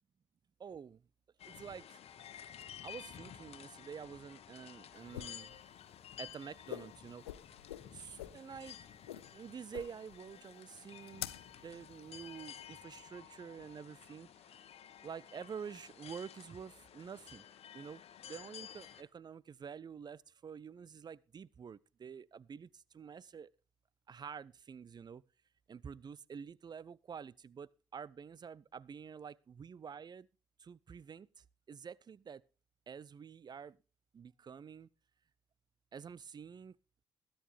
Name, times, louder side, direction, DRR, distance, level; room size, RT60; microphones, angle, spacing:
voice 1, 0.6-1.1 1.5-2.0 2.8-5.6 6.2-7.3 7.9-8.8 9.1-11.3 11.6-14.7 15.0-17.4 17.7-23.5 24.1-25.2 25.7-30.3 30.6-32.4 32.9-33.8 34.1-34.9 35.9-36.8, right 6 dB, 35° right, 0.6 m, -48 dB
sound 1, 1.4-19.0, left 9 dB, 55° left, 1.3 m, -53 dB
sound 2, 4.9-12.7, left 13 dB, 80° left, 0.5 m, -49 dB
20.5 x 8.8 x 3.4 m
figure-of-eight pair, 45°, 13 cm